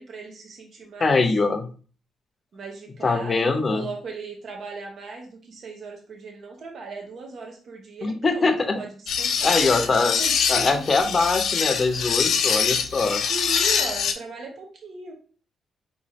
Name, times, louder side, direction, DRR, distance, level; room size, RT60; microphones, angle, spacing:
voice 1, 0.0-1.2 2.5-8.9 9.2-9.7 10.2-11.0 13.3-15.1, right 4 dB, 60° right, 2 dB, 0.9 m, -38 dB
voice 2, 1.0-1.7 3.0-3.9 8.0-8.8 9.4-10.1 10.5-13.2, left 3 dB, 30° left, 6 dB, 0.7 m, -22 dB
sound 1, 9.1-14.1, left 6 dB, 75° left, 0.5 m, -24 dB
4.9 x 3.1 x 2.8 m, 0.39 s
cardioid pair, 125°, 0 cm